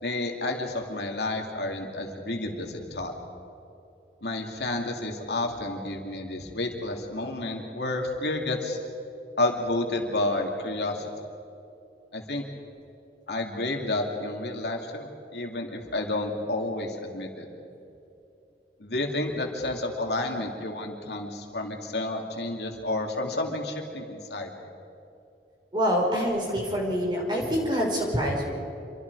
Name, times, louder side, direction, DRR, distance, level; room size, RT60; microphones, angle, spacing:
voice 1, 0.0-3.1 4.2-8.8 9.4-11.1 12.1-12.4 13.3-17.5 18.8-24.5, left 2 dB, 70° left, 2 dB, 2.8 m, -30 dB
voice 2, 25.7-28.5, equal, 25° right, -1 dB, 5.3 m, -26 dB
28.0 x 24.5 x 4.9 m, 2.8 s
head